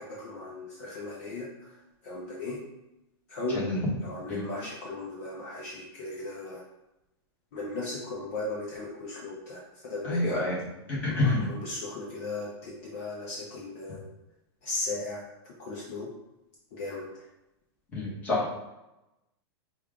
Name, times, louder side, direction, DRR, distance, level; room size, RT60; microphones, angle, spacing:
voice 1, 0.0-1.8 2.0-2.6 3.3-3.6 4.0-6.6 7.5-10.5 11.1-14.0 14.6-15.2 15.6-16.1 16.7-17.0, left 2 dB, 35° left, -4 dB, 0.7 m, -37 dB
voice 2, 10.0-10.6 10.9-11.5 17.9-18.5, left 2 dB, 10° left, -7 dB, 1.1 m, -27 dB
5.5 x 2.3 x 3.6 m, 0.95 s
supercardioid pair, 180°, 14 cm